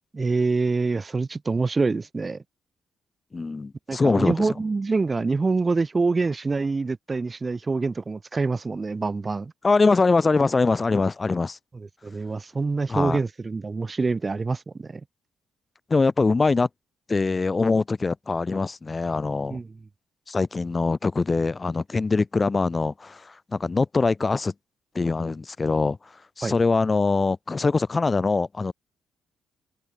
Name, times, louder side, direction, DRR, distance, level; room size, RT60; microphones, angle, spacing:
voice 1, 0.1-2.4 3.9-9.5 11.7-15.0 19.5-19.7 26.4-26.5, right 3 dB, 25° right, 0.7 m, -26 dB
voice 2, 3.3-4.5 9.6-11.6 12.9-13.2 15.9-16.7 17.1-19.6 20.3-24.5 24.9-26.0 26.4-28.7, left 3 dB, 25° left, 1.2 m, -23 dB
open air
cardioid pair, 90°, 0 cm